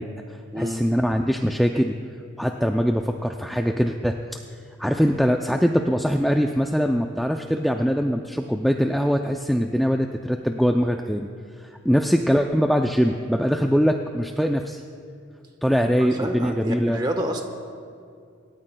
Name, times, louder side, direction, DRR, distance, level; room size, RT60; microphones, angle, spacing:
voice 1, 0.0-2.0 2.4-4.4 4.8-11.3 11.6-14.8 15.6-17.0, equal, ahead, 3 dB, 0.3 m, -22 dB
voice 2, 0.5-0.8 16.0-17.4, equal, 20° right, 4 dB, 1.1 m, -29 dB
26.5 x 13.0 x 2.2 m, 2.4 s
head